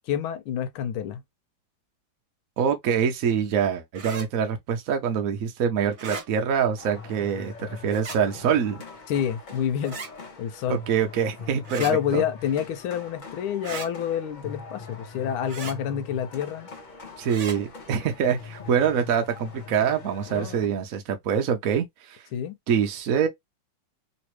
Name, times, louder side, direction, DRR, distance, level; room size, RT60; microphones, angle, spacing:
voice 1, 0.1-1.2 9.1-10.0 10.4-10.8 11.8-16.7 20.3-20.7 22.3-22.6, left 9 dB, 80° left, 1.5 m, -28 dB
voice 2, 2.6-8.8 10.7-11.8 12.1-12.2 17.2-22.2 22.7-23.3, right 7 dB, 65° right, 0.8 m, -25 dB
sound 1, 3.9-4.3 5.9-6.3 7.9-8.2 9.8-10.1 11.6-11.9 13.6-13.9 15.5-15.8 17.3-17.6, right 4 dB, 40° right, 1.3 m, -36 dB
sound 2, 6.8-20.7, left 5 dB, 65° left, 0.4 m, -42 dB
3.2 x 3.1 x 3.0 m
omnidirectional pair, 2.3 m